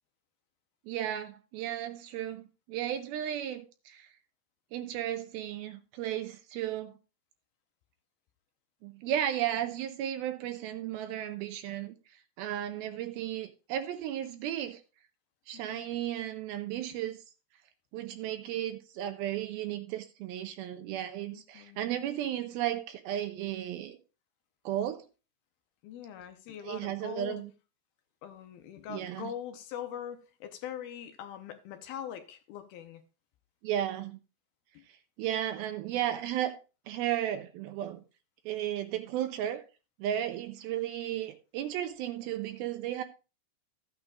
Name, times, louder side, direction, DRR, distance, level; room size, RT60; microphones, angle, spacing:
voice 1, 0.9-4.1 4.7-6.9 8.8-12.0 12.4-14.8 15.5-17.2 17.9-24.0 24.7-25.1 26.6-27.5 28.9-29.3 33.6-34.2 35.2-36.6 36.9-38.0 38.5-39.6 40.0-43.0, right 11 dB, 80° right, 2.3 m, -34 dB
voice 2, 15.5-16.0 21.3-21.8 25.8-27.4 28.2-33.0 34.7-34.8, left 9 dB, 75° left, 2.4 m, -42 dB
14.5 x 8.9 x 2.4 m
omnidirectional pair, 4.7 m